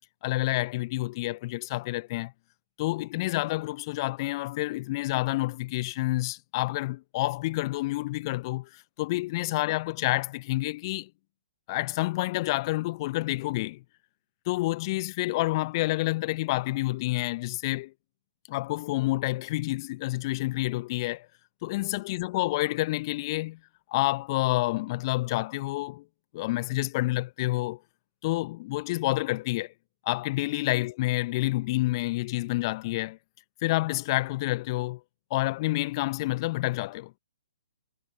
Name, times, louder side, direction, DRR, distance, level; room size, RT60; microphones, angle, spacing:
voice 1, 0.2-2.3 2.8-11.1 11.7-13.8 14.5-17.9 18.5-21.3 21.6-23.6 23.9-26.0 26.3-27.8 28.2-29.7 30.0-33.2 33.6-35.0 35.3-37.2, left 19 dB, 35° left, 0.8 m, -28 dB
figure-of-eight pair, 125°, 4 cm